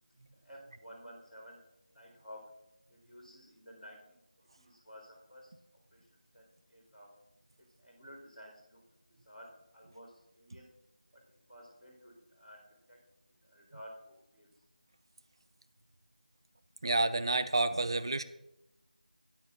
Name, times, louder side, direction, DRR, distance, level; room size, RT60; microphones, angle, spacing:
voice 1, 0.4-1.6 1.9-2.5 2.9-4.2 4.6-5.5 5.9-6.1 6.3-6.4 6.7-7.2 7.6-8.8 9.1-10.7 11.1-11.2 11.5-13.0 13.4-14.5, equal, ahead, -17 dB, 2.2 m, -53 dB
voice 2, 16.8-18.2, right 2 dB, 35° right, 11 dB, 0.4 m, -29 dB
12.5 x 9.3 x 2.5 m, 0.89 s
figure-of-eight pair, 170°, 5 cm